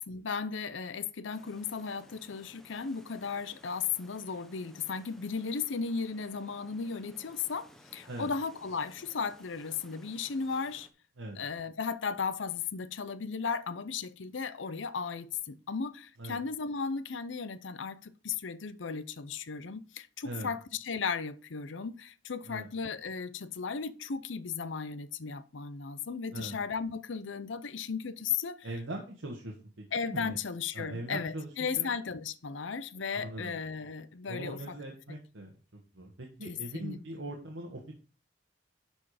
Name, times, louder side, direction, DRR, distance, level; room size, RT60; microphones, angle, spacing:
voice 1, 0.1-10.9 11.4-28.7 29.9-34.6 36.4-37.0, left 5 dB, 80° left, 0.6 m, -35 dB
sound 1, 1.3-10.9, equal, ahead, 0.9 m, -58 dB
voice 2, 28.6-30.4 30.7-31.9 33.2-33.5 34.3-35.5 35.9-37.9, right 1 dB, 85° right, 1.5 m, -41 dB
11.5 x 4.4 x 5.0 m
head